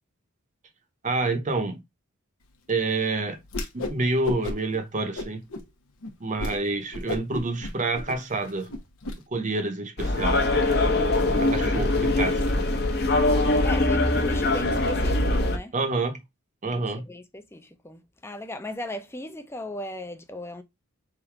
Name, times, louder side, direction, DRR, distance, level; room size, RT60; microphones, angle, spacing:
voice 1, 1.0-1.8 2.7-3.4 3.7-5.4 6.2-8.7 9.3-10.4 11.4-12.4 15.7-16.2 16.6-17.0, right 3 dB, 35° right, 0.8 m, -28 dB
Whoosh swoosh swish, 3.5-4.0 4.2-4.8 5.1-5.6 6.0-6.1 6.4-6.6 6.9-9.1, left 1 dB, 80° left, 0.9 m, -33 dB
sound 1, 10.0-15.6, left 2 dB, 50° left, 1.0 m, -22 dB
voice 2, 11.2-12.4 13.3-15.7 16.7-20.6, left 1 dB, 10° left, 0.5 m, -38 dB
3.7 x 2.6 x 4.5 m
head